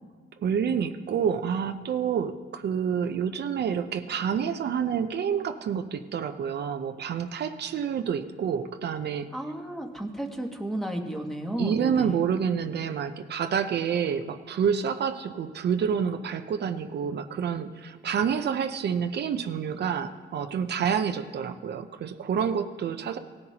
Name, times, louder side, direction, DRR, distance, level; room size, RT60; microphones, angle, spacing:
voice 1, 0.4-9.3 11.6-23.2, right 7 dB, 60° right, 7 dB, 0.7 m, -28 dB
voice 2, 9.3-12.2, right 1 dB, ahead, 2 dB, 1.5 m, -33 dB
17.5 x 10.5 x 2.9 m, 1.5 s
cardioid pair, 90°, 20 cm